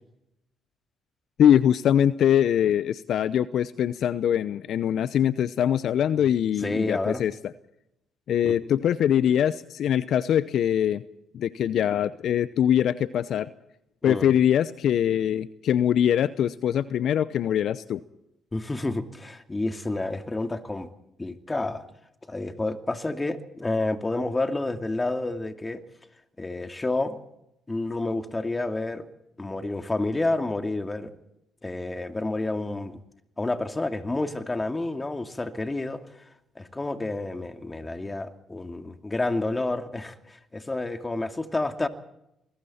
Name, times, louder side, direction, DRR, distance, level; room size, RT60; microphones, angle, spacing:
voice 1, 1.4-7.3 8.3-11.0 11.3-13.5 14.0-18.0, left 10 dB, 65° left, 16 dB, 0.7 m, -23 dB
voice 2, 6.6-7.2 8.4-8.5 14.0-14.3 18.5-20.9 21.2-21.9 22.3-25.8 26.4-27.2 27.7-29.0 29.4-31.1 31.6-33.0 33.4-36.0 36.6-41.9, left 2 dB, 20° left, 7 dB, 2.4 m, -29 dB
28.0 x 21.5 x 4.3 m, 0.84 s
hypercardioid pair, 50°, 0 cm